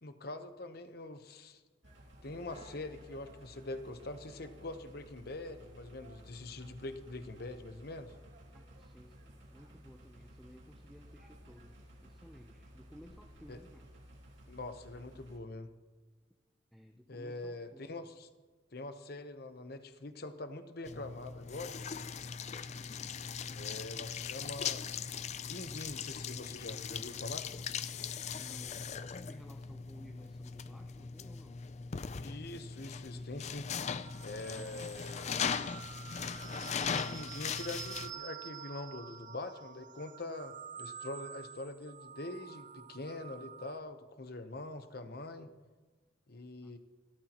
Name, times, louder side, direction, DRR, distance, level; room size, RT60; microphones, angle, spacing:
voice 1, 0.0-1.6 2.2-8.1 13.5-13.6 14.5-15.7 17.1-18.3 18.7-21.8 23.5-24.8 25.5-27.5 32.2-33.7 34.2-35.4 36.9-45.5 46.3-46.8, left 2 dB, 55° left, 9 dB, 1.0 m, -44 dB
sound 1, 1.8-15.4, equal, 75° right, 2.3 m, -55 dB
voice 2, 8.5-13.9 16.7-17.9 22.8-23.3 28.4-31.6 46.6-46.8, equal, ahead, 3 dB, 0.7 m, -57 dB
sound 2, 20.9-38.1, left 6 dB, 35° left, 0.4 m, -39 dB
sound 3, 34.0-43.8, right 8 dB, 40° right, 0.6 m, -48 dB
29.5 x 13.0 x 3.0 m, 1.3 s
head